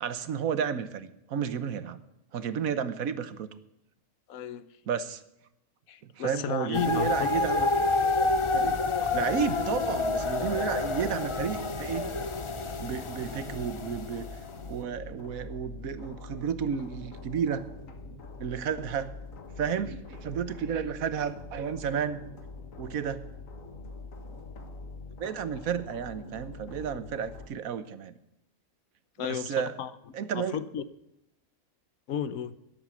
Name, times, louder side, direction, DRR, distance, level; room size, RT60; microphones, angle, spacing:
voice 1, 0.0-2.0 2.3-3.5 4.9-5.2 6.2-7.7 8.5-8.8 9.1-12.1 12.8-14.3 14.7-17.7 18.4-19.1 19.6-22.2 22.8-23.3 25.2-28.2 29.3-29.7 30.1-30.6, right 7 dB, 80° right, 1.4 m, -32 dB
voice 2, 4.3-4.7 5.9-7.4 9.0-9.1 29.2-30.9 32.1-32.6, left 8 dB, 85° left, 1.2 m, -34 dB
sound 1, 6.7-14.6, left 3 dB, 35° left, 0.5 m, -29 dB
sound 2, 8.2-27.5, left 3 dB, 70° left, 1.8 m, -44 dB
13.0 x 10.5 x 7.0 m
omnidirectional pair, 1.4 m